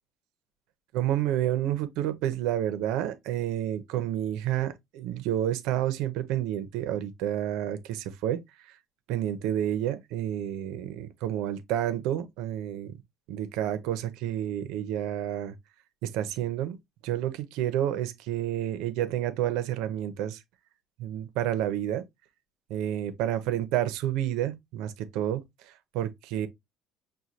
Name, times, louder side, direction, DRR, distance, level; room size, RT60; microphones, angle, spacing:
voice 1, 0.9-8.7 9.1-12.9 13.3-15.5 16.0-16.8 17.0-20.4 21.0-22.0 22.7-26.5, right 11 dB, 80° right, 0.7 m, -30 dB
6.3 x 2.2 x 2.8 m
cardioid pair, 165°, 0 cm